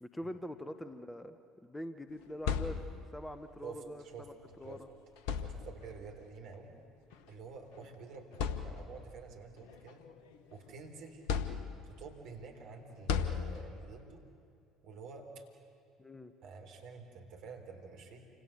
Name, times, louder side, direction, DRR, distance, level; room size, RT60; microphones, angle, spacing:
voice 1, 0.0-1.4 1.6-2.8 3.1-4.3 4.6-4.9 16.0-16.3, equal, 10° left, 10 dB, 1.2 m, -44 dB
sound 1, 2.1-3.3 4.5-4.7 5.2-6.0 7.1-7.3 7.8-7.9 8.3-9.2 9.7-10.7 11.3-12.1 13.1-14.0, left 7 dB, 60° left, 1.1 m, -36 dB
voice 2, 3.6-4.3 4.6-4.8 5.3-6.7 7.3-10.0 10.5-11.2 11.8-14.2 14.8-15.4 16.4-18.3, right 5 dB, 55° right, 2 dB, 3.8 m, -49 dB
29.0 x 26.5 x 6.8 m, 2.4 s
figure-of-eight pair, 60°, 0 cm